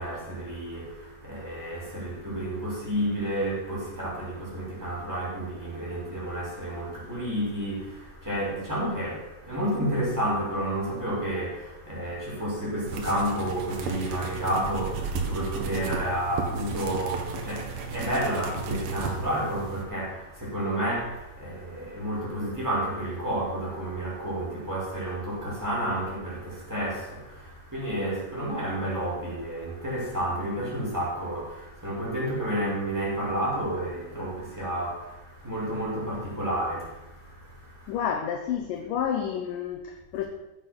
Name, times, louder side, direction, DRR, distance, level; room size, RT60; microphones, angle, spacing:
voice 1, 0.0-38.1, right 1 dB, 5° right, -6 dB, 5.3 m, -31 dB
sound 1, 12.9-19.8, right 4 dB, 65° right, 3.3 m, -34 dB
voice 2, 37.9-40.2, left 8 dB, 70° left, 5 dB, 2.2 m, -30 dB
15.0 x 9.4 x 6.1 m, 1.0 s
omnidirectional pair, 4.9 m